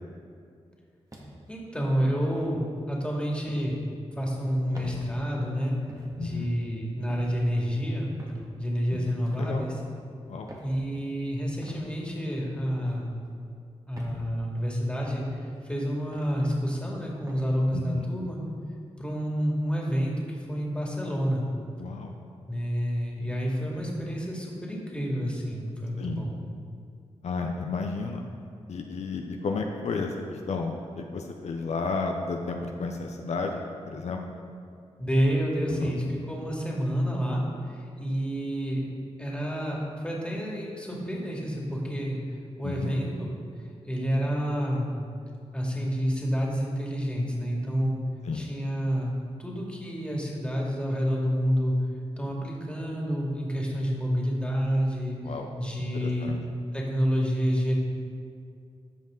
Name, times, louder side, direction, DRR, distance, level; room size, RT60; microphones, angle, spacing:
sound 1, 1.1-1.6 2.2-2.5 3.5-3.7 4.7-5.0 5.9-6.1 7.1-7.3 8.2-8.4 9.2-9.5 10.5-10.7 11.6-11.8 12.7-13.0 13.9-14.2 15.0-15.2 16.1-16.4 17.3-17.5, right 1 dB, 30° right, 1.9 m, -45 dB
voice 1, 1.5-3.8 4.2-5.7 6.2-8.1 8.6-9.7 10.6-13.1 13.9-18.4 19.0-21.4 22.5-26.3 35.0-38.8 39.2-42.2 42.6-43.3 43.9-44.9 45.5-48.0 48.3-49.1 49.4-51.8 52.2-55.2 55.6-56.3 56.7-57.8, equal, 10° left, -3 dB, 2.4 m, -29 dB
voice 2, 6.2-6.5 8.9-9.0 9.3-9.6 10.2-10.5 17.7-18.1 21.8-22.1 26.0-26.2 27.2-28.2 28.7-34.2 35.7-35.9 42.6-42.9 48.2-48.5 55.2-55.5 55.9-56.4, left 4 dB, 70° left, 3 dB, 0.7 m, -32 dB
13.5 x 5.3 x 3.9 m, 2.4 s
cardioid pair, 50°, 12 cm